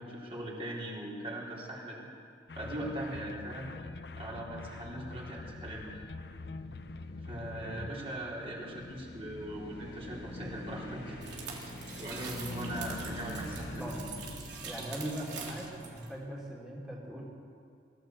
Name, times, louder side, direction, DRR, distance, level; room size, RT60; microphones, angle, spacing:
voice 1, 0.0-2.1 2.6-3.7 4.2-5.9 7.3-11.7 12.0-13.9, right 1 dB, 30° right, -5 dB, 4.1 m, -40 dB
sound 1, 2.5-7.9, left 3 dB, 60° left, 0.6 m, -45 dB
sound 2, 3.4-16.0, left 1 dB, 90° left, 5.6 m, -45 dB
voice 2, 7.3-7.9 13.2-13.5 13.8-14.1 14.6-17.2, equal, 5° right, -5 dB, 3.2 m, -41 dB
sound 3, 11.2-16.1, right 5 dB, 75° right, 3.7 m, -45 dB
24.0 x 14.5 x 8.0 m, 2.4 s
head